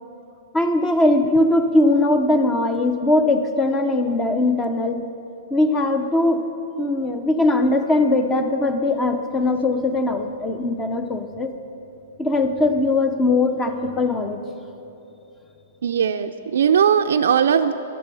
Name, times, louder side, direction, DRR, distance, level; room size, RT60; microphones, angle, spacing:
voice 1, 0.5-5.0 5.5-6.4 6.8-11.5 12.2-14.4, left 2 dB, 15° left, 7 dB, 0.7 m, -20 dB
voice 2, 15.8-17.7, right 8 dB, 75° right, 6 dB, 0.4 m, -19 dB
11.0 x 9.6 x 6.9 m, 2.9 s
hypercardioid pair, 145°, 0 cm